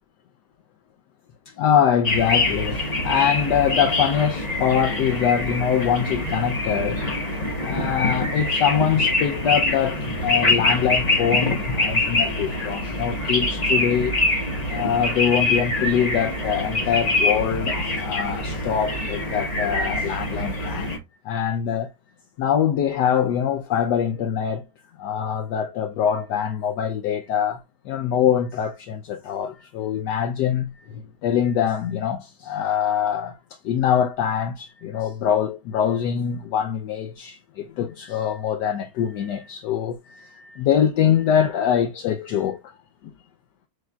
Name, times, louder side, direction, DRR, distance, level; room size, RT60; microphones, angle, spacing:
voice 1, 1.6-7.0 7.6-14.2 14.7-21.0 21.2-21.9 22.4-24.6 25.0-27.6 27.9-33.4 33.6-42.6, left 9 dB, 75° left, 1.1 m, -23 dB
sound 1, 2.0-21.0, left 2 dB, 25° left, 1.0 m, -24 dB
6.4 x 3.1 x 2.3 m
omnidirectional pair, 2.0 m